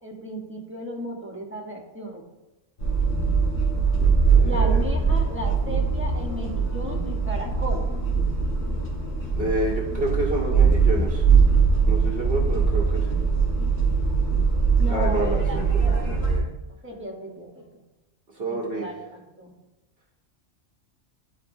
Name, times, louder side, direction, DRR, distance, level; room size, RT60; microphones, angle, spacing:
voice 1, 0.0-2.2 4.4-7.8 14.8-16.3 16.8-17.6 18.5-19.5, equal, 10° right, -1 dB, 1.0 m, -35 dB
sound 1, 2.8-16.4, right 5 dB, 65° left, 1.9 m, -21 dB
voice 2, 4.3-4.8 9.4-11.2 11.9-13.2 14.9-16.4 18.3-18.9, right 1 dB, 55° right, -1 dB, 1.0 m, -29 dB
11.0 x 3.8 x 2.7 m, 1.0 s
omnidirectional pair, 1.2 m